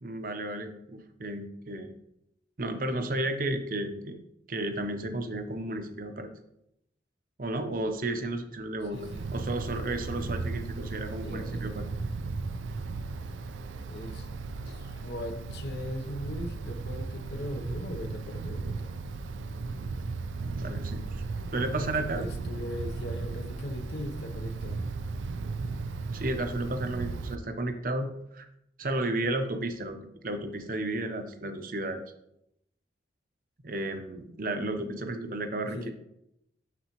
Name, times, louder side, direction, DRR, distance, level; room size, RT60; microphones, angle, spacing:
voice 1, 0.0-1.9 2.6-4.2 4.5-6.3 7.4-9.0 9.3-11.9 20.4-21.0 21.5-22.3 26.1-28.5 28.8-30.0 30.2-32.0 33.6-35.9, right 1 dB, 45° right, 7 dB, 0.7 m, -33 dB
voice 2, 8.9-9.2 11.1-11.6 13.9-14.3 14.6-18.9 21.6-24.8 35.7-35.9, left 1 dB, 60° left, 6 dB, 0.8 m, -39 dB
Wind, 9.0-27.4, right 3 dB, 90° right, 0.4 m, -36 dB
12.0 x 4.0 x 3.0 m, 0.79 s
head